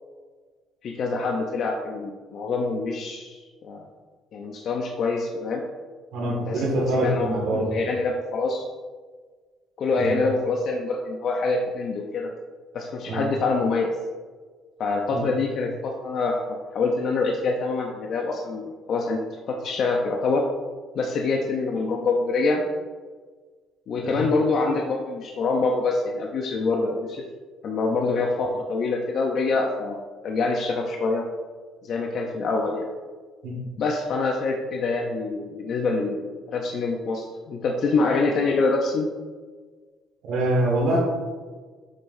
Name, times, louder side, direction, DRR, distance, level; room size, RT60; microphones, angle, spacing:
voice 1, 0.8-3.8 4.3-5.6 6.5-6.6 7.0-8.6 9.8-12.3 12.7-13.9 14.8-19.2 19.5-20.4 20.9-22.6 23.9-27.2 27.6-30.0 30.2-31.3 31.8-32.9 33.8-39.1, left 3 dB, 60° left, 1 dB, 0.6 m, -25 dB
voice 2, 6.1-7.6 10.0-10.1 13.1-13.2 15.1-15.3 24.0-24.2 33.4-33.6 40.2-41.0, right 1 dB, 75° right, -2 dB, 1.9 m, -24 dB
7.3 x 5.5 x 2.6 m, 1.5 s
cardioid pair, 100°, 0 cm